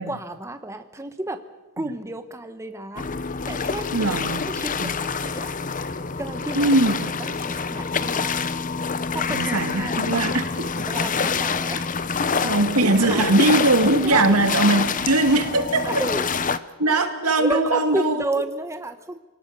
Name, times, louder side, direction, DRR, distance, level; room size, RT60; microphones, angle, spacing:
voice 1, 0.0-1.4 1.8-3.1 3.5-4.2 4.4-5.5 5.8-6.7 7.0-8.3 8.9-10.6 10.9-13.3 14.0-14.4 14.7-14.8 15.8-16.3 16.9-17.1 17.4-19.2, right 2 dB, 15° right, 8 dB, 1.0 m, -32 dB
sound 1, 3.0-16.6, left 5 dB, 35° left, 0.8 m, -26 dB
voice 2, 3.9-4.4 4.8-4.9 6.5-7.1 9.3-10.9 12.4-15.9 16.8-18.2, right 2 dB, 85° right, 6 dB, 2.4 m, -21 dB
27.0 x 18.5 x 6.7 m, 1.1 s
head